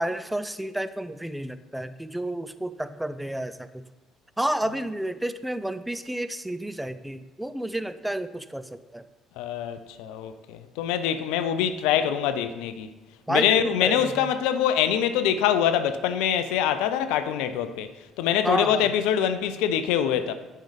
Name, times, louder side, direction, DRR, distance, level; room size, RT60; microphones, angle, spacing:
voice 1, 0.0-3.8 4.4-9.0 13.3-14.3 18.4-18.9, right 1 dB, 5° right, 0.5 m, -30 dB
voice 2, 9.4-12.9 13.3-17.9 18.2-20.3, left 9 dB, 70° left, 0.4 m, -24 dB
10.5 x 5.5 x 3.4 m
figure-of-eight pair, 50°, 0 cm